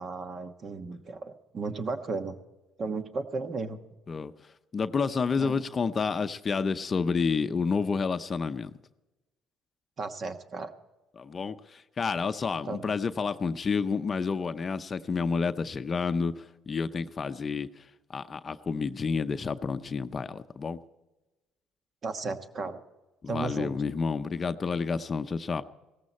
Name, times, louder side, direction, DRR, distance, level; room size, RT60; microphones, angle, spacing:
voice 1, 0.0-2.4 2.8-3.8 5.3-5.6 10.0-10.7 12.7-12.9 22.0-22.8 23.3-23.7, right 3 dB, 45° right, 8 dB, 1.2 m, -34 dB
voice 2, 4.7-8.7 11.2-17.8 18.1-20.8 23.2-25.6, left 5 dB, 35° left, 10 dB, 0.6 m, -30 dB
17.0 x 14.5 x 4.2 m, 1.1 s
cardioid pair, 95°, 0 cm